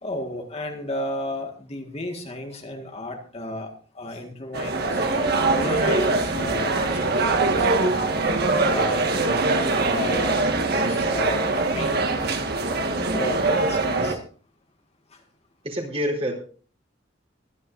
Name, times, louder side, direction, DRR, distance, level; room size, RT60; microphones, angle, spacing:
voice 1, 0.0-3.7 4.0-8.1 8.6-10.4 10.8-11.4 11.7-12.4 13.1-14.2, left 1 dB, 35° left, 3 dB, 1.8 m, -33 dB
sound 1, 4.5-14.2, right 3 dB, 55° right, 1.7 m, -23 dB
voice 2, 15.6-16.3, equal, 30° right, -1 dB, 4.2 m, -26 dB
24.0 x 10.0 x 2.6 m, 0.40 s
head